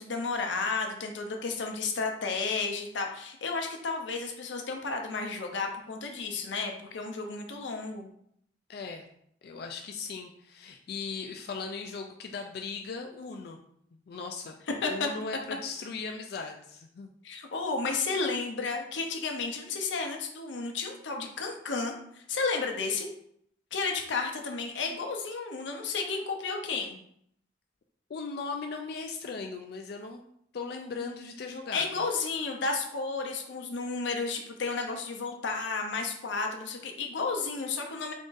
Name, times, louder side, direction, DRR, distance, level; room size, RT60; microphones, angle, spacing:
voice 1, 0.0-8.1 14.8-15.1 17.2-23.1 23.7-27.0 31.7-38.1, left 4 dB, 85° left, 3 dB, 0.7 m, -32 dB
voice 2, 8.7-9.1 9.4-13.6 14.1-14.6 14.9-17.1 28.1-30.2 30.5-32.0, left 4 dB, 55° left, 3 dB, 0.3 m, -38 dB
3.6 x 2.6 x 3.8 m, 0.70 s
head